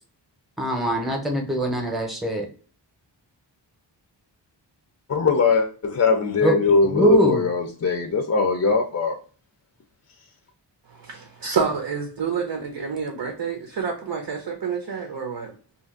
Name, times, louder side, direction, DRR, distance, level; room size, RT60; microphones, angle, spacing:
voice 1, 0.6-2.5 6.4-6.6 6.8-7.4, right 1 dB, ahead, 0.8 m, -22 dB
voice 2, 5.1-9.2, left 4 dB, 35° left, 0.5 m, -21 dB
voice 3, 10.9-15.5, right 6 dB, 65° right, 0.8 m, -28 dB
2.8 x 2.5 x 3.7 m
wide cardioid pair, 80°, 44 cm